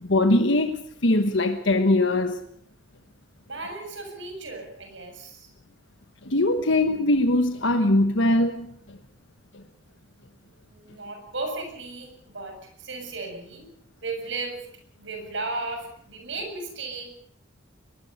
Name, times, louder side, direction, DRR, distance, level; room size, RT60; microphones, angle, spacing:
voice 1, 0.0-2.4 6.2-9.0 9.5-9.6, left 2 dB, 65° left, 1.4 m, -22 dB
voice 2, 3.5-5.5 10.6-13.7 14.0-14.7 15.0-17.1, right 3 dB, 65° right, 6.9 m, -35 dB
22.5 x 20.5 x 6.7 m
head